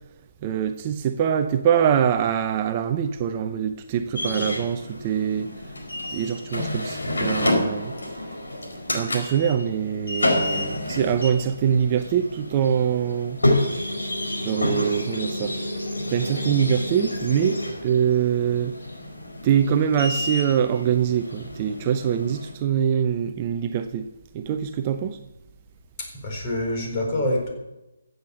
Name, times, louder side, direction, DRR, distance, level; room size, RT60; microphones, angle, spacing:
voice 1, 0.4-5.7 6.1-8.3 8.9-13.4 14.4-15.6 16.1-18.8 19.4-24.1 24.3-25.2, right 8 dB, 30° right, 8 dB, 0.7 m, -24 dB
sound 1, 4.1-22.5, left 1 dB, 80° left, 4.7 m, -29 dB
voice 2, 26.0-27.5, left 1 dB, 30° left, 1 dB, 4.3 m, -26 dB
15.0 x 8.0 x 7.0 m, 0.97 s
figure-of-eight pair, 145°, 0 cm